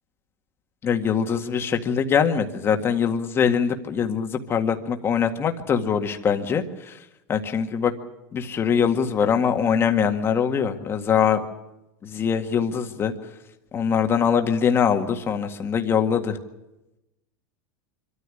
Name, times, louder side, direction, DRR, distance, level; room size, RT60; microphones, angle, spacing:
voice 1, 0.8-7.0 7.3-7.9 8.3-11.4 12.0-13.1 13.7-16.4, left 7 dB, 20° left, 5 dB, 1.9 m, -23 dB
25.5 x 13.5 x 10.0 m, 0.92 s
supercardioid pair, 155°, 11 cm